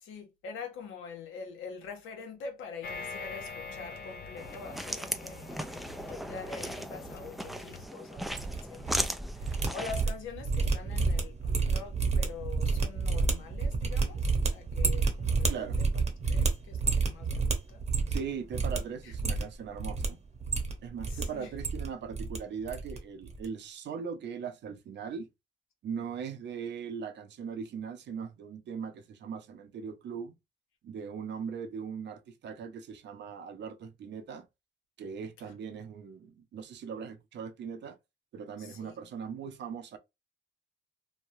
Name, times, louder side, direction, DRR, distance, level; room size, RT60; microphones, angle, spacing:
voice 1, 0.0-15.6 15.9-16.0 16.3-17.8 19.0-19.1 21.1-21.5 38.6-38.9, left 5 dB, 85° left, 0.9 m, -45 dB
sound 1, 2.8-7.9, left 3 dB, 55° left, 0.6 m, -44 dB
sound 2, 4.4-10.0, equal, ahead, 0.3 m, -37 dB
sound 3, 8.2-9.1 9.3-18.3 18.5-18.8 19.1-20.1 20.4-21.2 21.5-22.4 22.7-23.0 23.2-23.5, right 4 dB, 35° right, 0.8 m, -29 dB
voice 2, 15.5-15.8 18.1-20.2 20.8-25.3 25.8-30.3 30.8-34.5 35.0-38.0 38.3-40.0, right 6 dB, 65° right, 0.6 m, -39 dB
3.1 x 2.2 x 2.6 m
cardioid pair, 90°, 20 cm